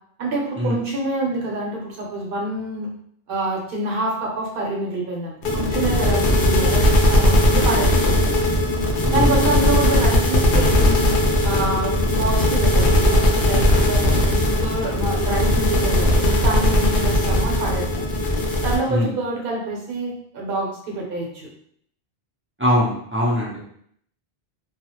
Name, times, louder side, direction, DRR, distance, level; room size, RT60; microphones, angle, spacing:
voice 1, 0.2-2.9 3.3-8.2 9.1-11.0 11.4-18.1 18.6-21.5, right 2 dB, 60° right, -2 dB, 0.9 m, -26 dB
sound 1, 5.4-18.8, left 1 dB, 60° left, 0.7 m, -18 dB
voice 2, 9.0-10.0 18.9-19.1 22.6-23.6, left 1 dB, 20° right, -7 dB, 0.4 m, -23 dB
2.3 x 2.0 x 2.8 m, 0.66 s
omnidirectional pair, 1.1 m